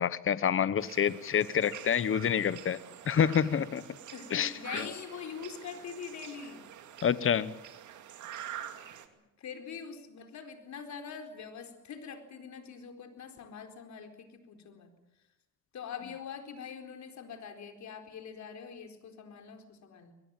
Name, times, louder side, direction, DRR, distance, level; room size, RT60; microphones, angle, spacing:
voice 1, 0.0-2.8 3.1-3.8 4.3-4.9 7.0-7.5, left 8 dB, 45° left, 16 dB, 1.0 m, -28 dB
sound 1, 0.8-9.1, right 10 dB, 75° right, 2.6 m, -46 dB
voice 2, 4.1-6.7 9.4-14.9 15.7-20.1, left 6 dB, 65° left, 5 dB, 4.3 m, -43 dB
23.0 x 20.0 x 9.0 m, 0.95 s
cardioid pair, 90°, 30 cm